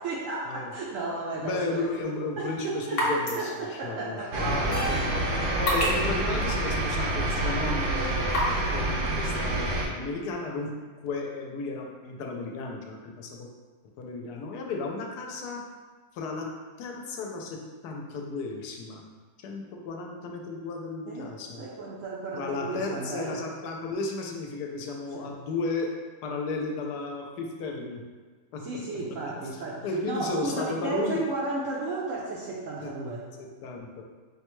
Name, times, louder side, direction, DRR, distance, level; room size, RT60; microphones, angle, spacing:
voice 1, 0.0-1.9 2.4-4.6 6.9-7.1 21.1-21.3 21.6-23.4 25.1-25.3 28.6-33.3, right 3 dB, 70° right, -4 dB, 0.7 m, -34 dB
voice 2, 1.4-5.4 5.7-10.7 11.0-13.5 14.0-15.6 16.1-16.5 16.8-19.0 19.4-21.6 22.3-28.0 28.5-28.6 29.3-29.5 29.8-31.2 32.8-32.9 33.4-34.0, left 3 dB, 80° left, 1 dB, 1.1 m, -34 dB
sound 1, 1.9-8.7, left 1 dB, 45° left, 0.9 m, -34 dB
sound 2, 4.3-9.9, right 1 dB, 85° right, 1.3 m, -27 dB
Keyboard (musical), 4.7-7.2, right 3 dB, 10° left, 0.8 m, -40 dB
5.4 x 2.2 x 3.0 m, 1.4 s
omnidirectional pair, 1.7 m